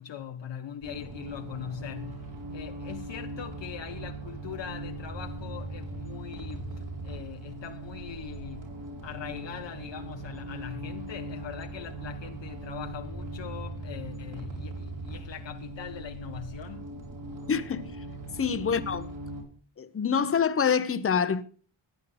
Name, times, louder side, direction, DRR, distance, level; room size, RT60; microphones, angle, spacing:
voice 1, 0.0-8.7 9.0-16.9 18.6-18.8, left 9 dB, 60° left, 0.9 m, -41 dB
sound 1, 0.8-19.4, right 2 dB, 65° right, 4.8 m, -39 dB
voice 2, 17.5-18.0 18.4-19.1 19.8-21.4, left 6 dB, 30° left, 0.8 m, -26 dB
15.5 x 9.5 x 3.8 m
wide cardioid pair, 120°, 49 cm